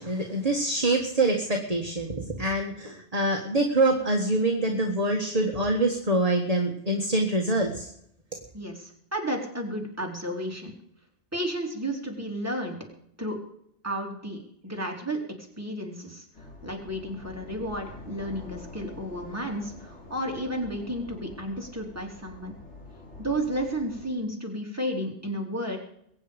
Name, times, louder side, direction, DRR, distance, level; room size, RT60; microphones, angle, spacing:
voice 1, 0.0-7.9, right 2 dB, 35° right, 2 dB, 1.7 m, -25 dB
voice 2, 8.5-10.8 11.3-12.8 13.2-13.4 13.8-16.2 16.6-22.5 23.2-25.8, equal, 15° right, 0 dB, 3.1 m, -32 dB
sound 1, 16.3-24.1, left 2 dB, 80° left, 3.0 m, -46 dB
22.0 x 8.9 x 5.2 m, 0.71 s
omnidirectional pair, 1.2 m